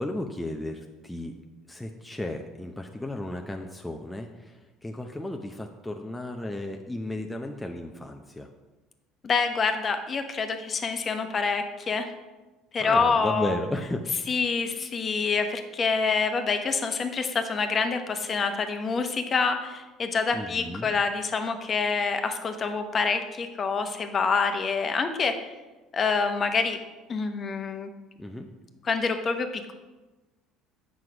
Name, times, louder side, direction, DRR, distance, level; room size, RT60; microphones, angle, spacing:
voice 1, 0.0-1.3 1.7-8.5 12.8-14.0 20.3-20.9 28.2-28.5, left 1 dB, 5° left, 2 dB, 0.6 m, -34 dB
voice 2, 9.2-12.1 12.7-13.5 14.3-25.4 25.9-26.8 27.1-27.9 28.8-29.7, left 5 dB, 35° left, 6 dB, 0.9 m, -26 dB
7.6 x 6.2 x 4.9 m, 1.1 s
supercardioid pair, 95°, 0 cm